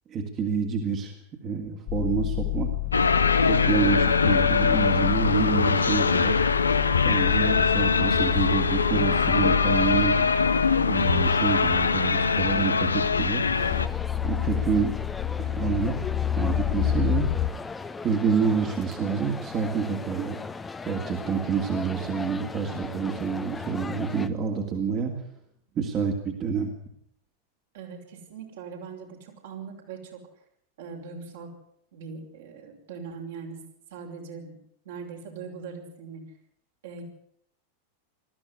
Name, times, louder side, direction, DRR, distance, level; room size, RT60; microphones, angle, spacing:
voice 1, 0.1-1.2 1.4-2.7 3.5-6.4 7.0-10.3 10.9-13.4 14.2-15.0 15.4-16.0 16.4-17.3 18.0-20.4 20.9-25.2 25.7-26.7, right 6 dB, 30° right, 3 dB, 2.8 m, -28 dB
sound 1, 1.9-17.5, left 13 dB, 35° left, 1.1 m, -30 dB
sound 2, 2.9-13.9, left 5 dB, 75° left, 1.0 m, -22 dB
sound 3, 13.5-24.3, left 4 dB, 15° left, 1.2 m, -38 dB
voice 2, 27.7-30.2 30.8-31.5 31.9-33.6 33.9-34.6 34.8-36.2 36.8-37.0, right 5 dB, 60° right, 0 dB, 5.4 m, -40 dB
20.0 x 14.0 x 9.7 m, 0.71 s
figure-of-eight pair, 90°, 0 cm